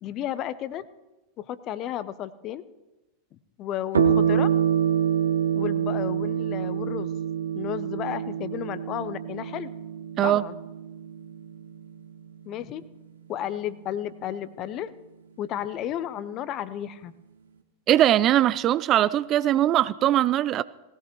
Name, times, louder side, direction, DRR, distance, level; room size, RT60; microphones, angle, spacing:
voice 1, 0.0-0.8 1.4-2.6 3.3-4.5 5.5-7.1 7.5-9.7 10.2-10.6 12.5-12.8 13.3-14.9 15.4-17.1, left 11 dB, 35° left, 15 dB, 0.7 m, -33 dB
sound 1, 3.9-12.8, right 8 dB, 70° right, 1.0 m, -27 dB
voice 2, 17.9-20.6, right 12 dB, 30° right, 18 dB, 0.4 m, -21 dB
19.0 x 16.0 x 3.2 m, 1.0 s
figure-of-eight pair, 90°, 0 cm